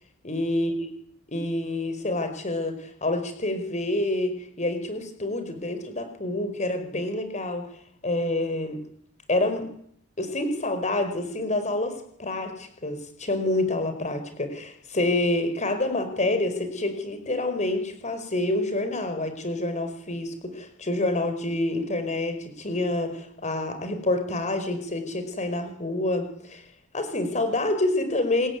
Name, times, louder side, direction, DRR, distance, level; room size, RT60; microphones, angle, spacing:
voice 1, 0.2-0.9 1.3-7.7 8.0-8.8 9.3-9.7 10.2-26.6 26.9-28.5, left 2 dB, 30° left, 9 dB, 5.0 m, -27 dB
27.0 x 21.0 x 9.7 m, 0.66 s
head